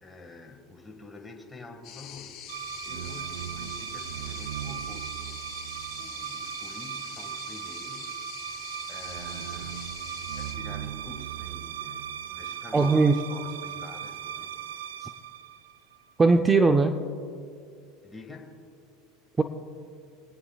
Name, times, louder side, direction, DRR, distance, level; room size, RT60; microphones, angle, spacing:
voice 1, 0.0-5.4 6.0-14.5 18.0-18.6, left 3 dB, 15° left, 3 dB, 1.8 m, -48 dB
sound 1, 1.8-10.5, left 9 dB, 50° left, 3.6 m, -44 dB
sound 2, 2.5-16.1, right 10 dB, 85° right, 0.4 m, -37 dB
voice 2, 12.7-13.1 15.0-15.1 16.2-17.0 19.4-19.5, right 3 dB, 20° right, 7 dB, 0.6 m, -20 dB
28.0 x 9.5 x 2.4 m, 2.4 s
supercardioid pair, 105°, 0 cm